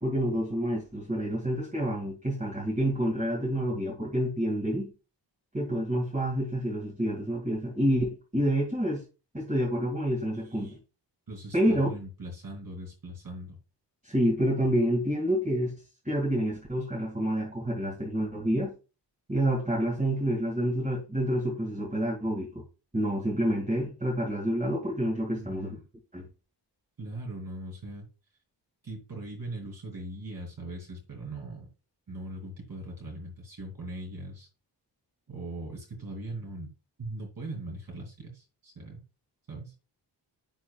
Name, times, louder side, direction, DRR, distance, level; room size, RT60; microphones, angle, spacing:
voice 1, 0.0-4.9 5.5-9.0 9.3-10.8 11.5-12.0 14.0-15.7 16.0-18.7 19.3-22.6 22.9-25.8 26.1-26.3, equal, 15° right, -4 dB, 2.3 m, -28 dB
voice 2, 10.4-10.8 11.3-13.6 25.3-25.8 27.0-28.1 28.8-31.7 32.1-34.5 35.3-36.7 37.0-39.0 39.5-39.7, right 2 dB, 50° right, -1 dB, 3.0 m, -40 dB
10.5 x 4.5 x 2.4 m, 0.31 s
wide cardioid pair, 130°, 44 cm